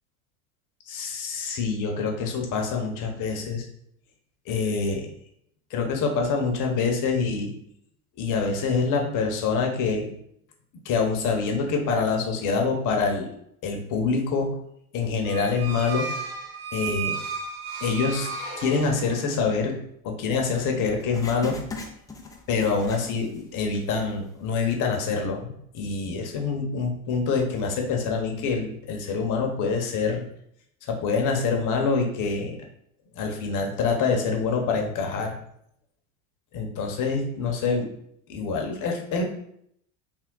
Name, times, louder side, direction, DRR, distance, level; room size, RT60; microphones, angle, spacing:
voice 1, 0.9-3.7 4.5-5.1 5.7-7.5 8.2-10.1 10.8-13.3 13.6-14.6 14.9-16.1 16.7-17.2 17.8-18.3 18.6-19.8 20.0-21.6 22.5-30.2 30.9-32.6 33.2-35.3 36.5-37.9 38.3-39.2, left 4 dB, 45° left, 2 dB, 1.0 m, -26 dB
sound 1, 15.3-19.4, right 5 dB, 70° right, 1.1 m, -34 dB
Writing, 20.5-23.5 23.8-23.9 24.6-24.7, left 3 dB, 10° left, 0.4 m, -39 dB
3.5 x 2.2 x 3.8 m, 0.72 s
hypercardioid pair, 90°, 43 cm